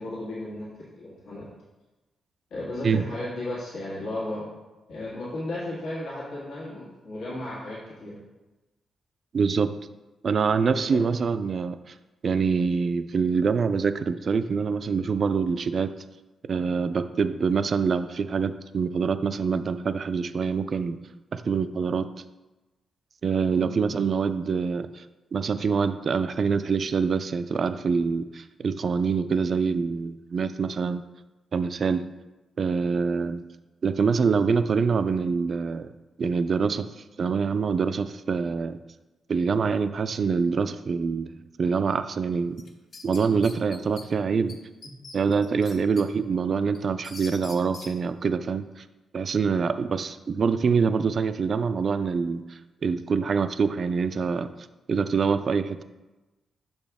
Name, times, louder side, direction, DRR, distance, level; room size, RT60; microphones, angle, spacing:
voice 1, 0.0-1.5 2.5-4.4 4.9-8.2 10.7-11.0 23.5-23.7 44.8-45.0 45.7-45.8, left 1 dB, 80° left, -7 dB, 1.7 m, -35 dB
voice 2, 9.3-9.8 10.2-11.9 12.2-15.9 16.5-21.0 21.3-22.1 23.2-25.0 25.3-31.0 31.5-32.0 32.6-33.4 33.8-35.9 36.2-36.9 37.2-38.8 39.3-41.3 41.6-42.6 43.0-44.6 45.1-48.8 49.1-52.4 52.8-54.5 54.9-55.8, right 5 dB, 45° right, 12 dB, 0.3 m, -25 dB
sound 1, 42.6-44.1 44.5-44.6 44.8-46.0 46.5-47.9, left 3 dB, 45° left, 0.7 m, -43 dB
6.5 x 5.2 x 3.5 m, 1.1 s
wide cardioid pair, 140°, 0 cm